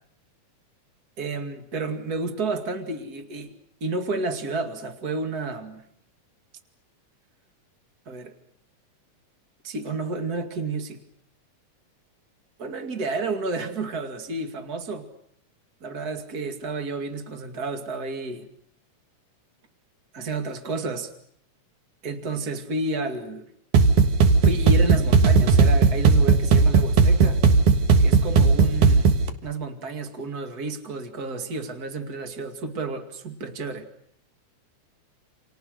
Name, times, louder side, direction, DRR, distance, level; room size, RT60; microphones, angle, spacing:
voice 1, 1.2-3.5 3.8-5.9 8.1-8.3 9.6-11.0 12.6-15.1 15.8-18.5 20.1-21.1 22.0-23.5 24.4-27.4 28.0-29.1 29.4-33.9, right 3 dB, 35° right, 7 dB, 2.5 m, -31 dB
sound 1, 23.7-29.3, right 4 dB, 90° right, 3.1 m, -17 dB
29.5 x 28.5 x 6.6 m, 0.65 s
omnidirectional pair, 3.4 m